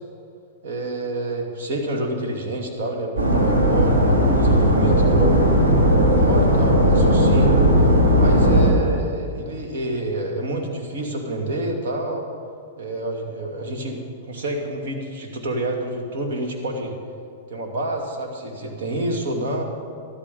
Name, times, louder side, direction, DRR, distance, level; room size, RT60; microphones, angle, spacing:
voice 1, 0.6-5.3 5.9-7.6 8.1-12.3 12.8-16.9 17.5-19.6, right 1 dB, 65° right, 2 dB, 2.6 m, -28 dB
sound 1, 3.2-8.7, equal, 85° right, 3.5 m, -16 dB
13.0 x 12.5 x 5.5 m, 2.4 s
hypercardioid pair, 110°, 0 cm